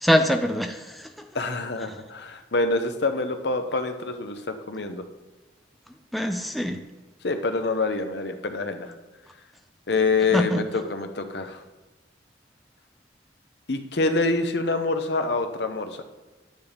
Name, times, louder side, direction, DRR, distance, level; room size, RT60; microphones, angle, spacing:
voice 1, 0.0-1.3 6.1-6.8 10.3-10.6, equal, ahead, 5 dB, 0.4 m, -24 dB
voice 2, 1.3-5.0 7.2-8.9 9.9-11.6 13.7-16.0, left 3 dB, 60° left, 7 dB, 0.8 m, -26 dB
10.5 x 9.5 x 3.5 m, 1.2 s
head